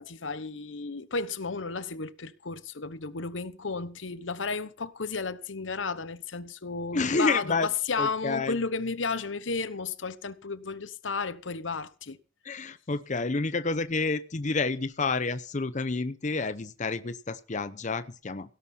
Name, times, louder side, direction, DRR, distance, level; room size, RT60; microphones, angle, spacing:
voice 1, 0.0-12.2, left 4 dB, 80° left, 1.0 m, -33 dB
voice 2, 6.9-7.7 8.0-8.6 12.4-18.6, left 3 dB, 40° left, 0.7 m, -29 dB
17.0 x 11.5 x 4.4 m
head